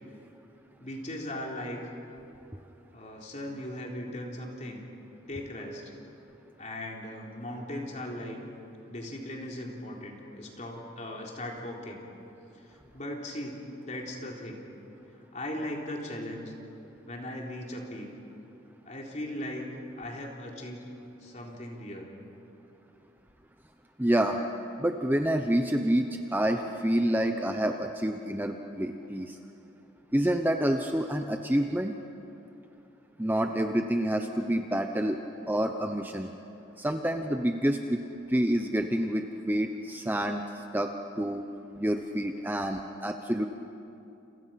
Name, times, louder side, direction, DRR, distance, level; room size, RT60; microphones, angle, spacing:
voice 1, 0.8-1.8 2.9-4.8 5.3-5.8 6.6-8.4 8.9-12.0 12.7-13.6 13.8-14.6 15.3-16.5 17.0-18.1 18.9-19.7 20.0-20.9 21.2-22.1, left 1 dB, 40° left, -1 dB, 3.9 m, -38 dB
voice 2, 24.0-24.4 24.8-29.4 30.1-31.9 33.2-35.2 35.5-36.3 36.8-40.9 41.2-41.4 41.8-43.5, right 1 dB, 10° right, 5 dB, 0.8 m, -28 dB
29.0 x 28.5 x 5.9 m, 2.9 s
head